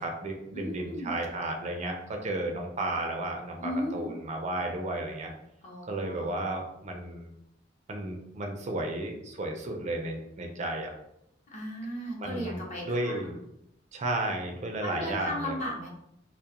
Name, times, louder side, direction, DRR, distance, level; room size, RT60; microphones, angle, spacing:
voice 1, 0.0-5.3 5.9-7.3 7.9-10.9 12.2-13.3 13.9-15.5, right 2 dB, 40° right, 2 dB, 0.4 m, -33 dB
voice 2, 0.5-1.1 3.6-4.1 5.6-6.5 11.5-13.4 14.8-15.9, equal, 40° left, -3 dB, 0.7 m, -36 dB
2.2 x 2.0 x 2.8 m, 0.80 s
head